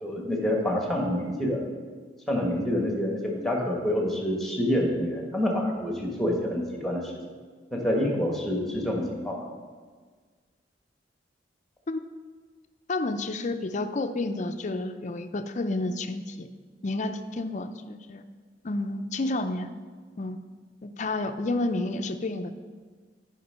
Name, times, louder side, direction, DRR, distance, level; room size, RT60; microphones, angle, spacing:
voice 1, 0.0-1.6 2.3-7.1 7.7-9.5, left 1 dB, ahead, 0 dB, 1.3 m, -27 dB
voice 2, 12.9-16.5 16.8-18.2 18.6-19.7 20.2-20.4 20.8-22.5, left 2 dB, 45° left, 9 dB, 0.5 m, -30 dB
9.6 x 5.1 x 5.5 m, 1.6 s
head